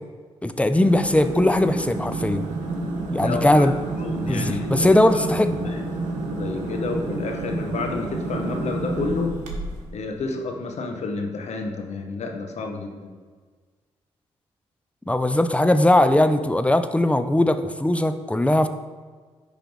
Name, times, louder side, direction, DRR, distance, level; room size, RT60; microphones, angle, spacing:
voice 1, 0.4-2.5 3.1-3.7 4.3-5.7 15.1-18.7, left 1 dB, 10° left, 9 dB, 0.6 m, -19 dB
sound 1, 0.7-9.9, right 2 dB, 75° right, 1.0 m, -29 dB
voice 2, 3.2-3.7 3.9-5.0 5.4-6.0 6.3-9.3 9.9-13.2, left 3 dB, 60° left, 3 dB, 1.1 m, -30 dB
10.0 x 3.4 x 3.9 m, 1.5 s
hypercardioid pair, 40°, 13 cm